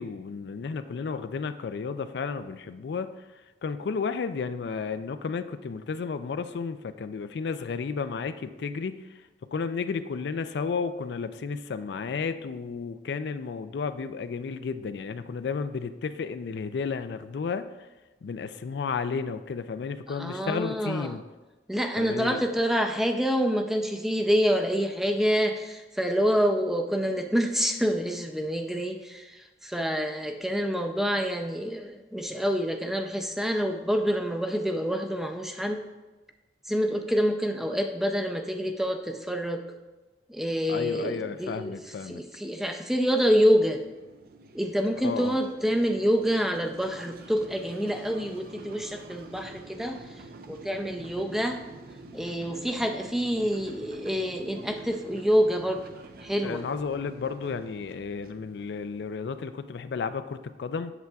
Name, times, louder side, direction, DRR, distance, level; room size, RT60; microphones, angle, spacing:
voice 1, 0.0-3.2 3.6-9.0 9.5-17.7 18.2-21.2 22.0-22.4 40.7-42.2 45.0-45.4 56.4-60.9, left 5 dB, 70° left, 11 dB, 0.4 m, -32 dB
voice 2, 20.1-21.2 21.7-35.8 36.7-39.6 40.3-43.8 44.5-50.0 50.5-51.6 52.1-55.8 56.2-56.6, equal, ahead, 4 dB, 0.4 m, -27 dB
sound 1, 43.1-59.7, right 3 dB, 55° right, 0.5 m, -48 dB
8.1 x 7.5 x 2.3 m, 1.1 s
head